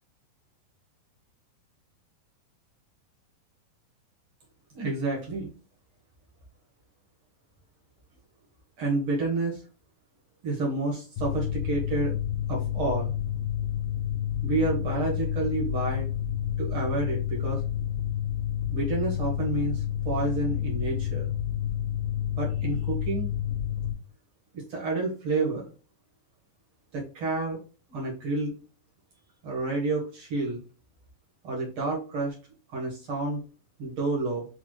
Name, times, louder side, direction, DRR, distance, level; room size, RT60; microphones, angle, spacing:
voice 1, 4.7-5.5 8.8-9.6 10.4-12.2 12.5-13.1 14.4-16.1 16.6-17.6 18.7-21.3 22.4-23.3 24.5-25.7 26.9-27.6 27.9-28.5 29.4-30.6 31.4-32.3 32.7-33.4 33.8-34.5, right 3 dB, 85° right, -3 dB, 1.1 m, -29 dB
Mechanical fan, 11.2-23.9, left 10 dB, 85° left, 2.3 m, -29 dB
5.8 x 2.1 x 3.1 m, 0.36 s
omnidirectional pair, 4.1 m